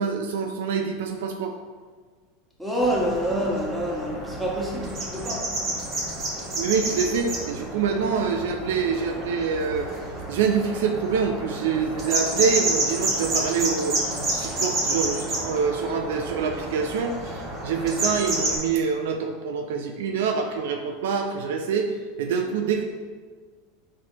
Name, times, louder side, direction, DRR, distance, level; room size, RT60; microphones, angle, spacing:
voice 1, 0.0-1.5 6.5-9.9 10.3-14.0 14.3-21.9 22.2-22.8, right 6 dB, 70° right, 4 dB, 0.4 m, -26 dB
voice 2, 2.6-5.5, right 1 dB, 5° right, -4 dB, 1.3 m, -27 dB
sound 1, 2.8-18.6, right 1 dB, 40° right, 1.5 m, -30 dB
4.2 x 4.2 x 3.0 m, 1.5 s
hypercardioid pair, 85°, 0 cm